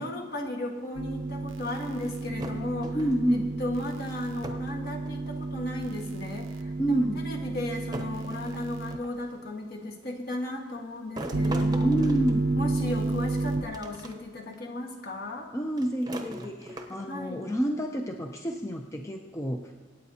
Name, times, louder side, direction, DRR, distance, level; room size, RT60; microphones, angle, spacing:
voice 1, 0.0-3.0 3.6-7.0 7.2-11.9 12.5-15.5 17.1-17.4, left 1 dB, 50° left, 1 dB, 1.6 m, -35 dB
sound 1, 0.9-9.0 11.3-13.6, right 2 dB, 75° right, 0.6 m, -31 dB
sound 2, 2.4-3.4 4.4-4.8 5.0-5.7 6.7-6.8 7.9-9.2 11.2-13.0 13.7-14.1 14.5-14.6 15.8-17.2, right 1 dB, 20° right, 0.8 m, -40 dB
voice 2, 2.9-3.5 6.8-7.3 11.8-12.5 15.5-19.7, right 1 dB, 15° left, 3 dB, 0.5 m, -29 dB
25.5 x 8.8 x 2.8 m, 1.4 s
head